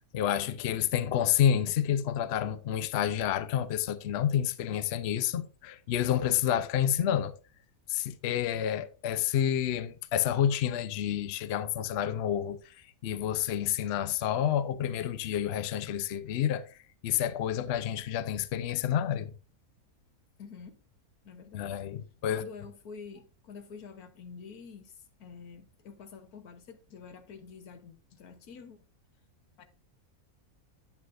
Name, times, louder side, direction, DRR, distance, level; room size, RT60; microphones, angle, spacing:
voice 1, 0.1-7.3 7.9-12.8 13.0-16.8 17.0-19.3 21.5-22.4, left 10 dB, 60° left, 0.7 m, -29 dB
voice 2, 20.4-20.8 21.2-21.8 22.3-28.8 29.6-29.7, left 5 dB, 85° left, 1.5 m, -47 dB
9.4 x 8.2 x 2.5 m
omnidirectional pair, 1.5 m